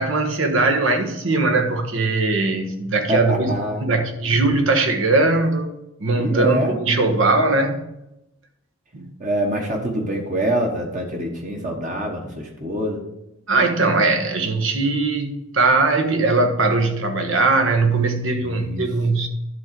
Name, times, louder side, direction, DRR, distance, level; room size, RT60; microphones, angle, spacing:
voice 1, 0.0-3.5 3.8-5.7 6.0-7.8 8.9-9.1 13.5-19.3, right 3 dB, 65° right, 1.3 m, -20 dB
voice 2, 3.1-3.8 6.1-6.7 9.2-13.0 18.4-18.8, right 1 dB, 35° right, 1.3 m, -25 dB
11.0 x 3.9 x 7.5 m
head